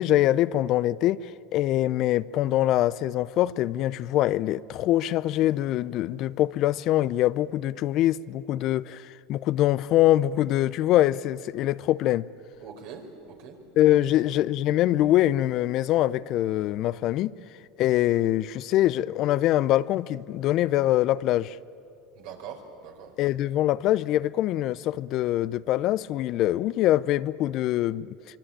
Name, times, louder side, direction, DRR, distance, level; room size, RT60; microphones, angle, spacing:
voice 1, 0.0-12.3 13.8-17.3 17.8-21.6 23.2-28.1, left 14 dB, 55° left, 0.6 m, -24 dB
voice 2, 12.6-13.6 14.0-14.2 22.2-23.1, right 7 dB, 70° right, 4.5 m, -43 dB
25.0 x 24.0 x 8.8 m
hypercardioid pair, 95°, 0 cm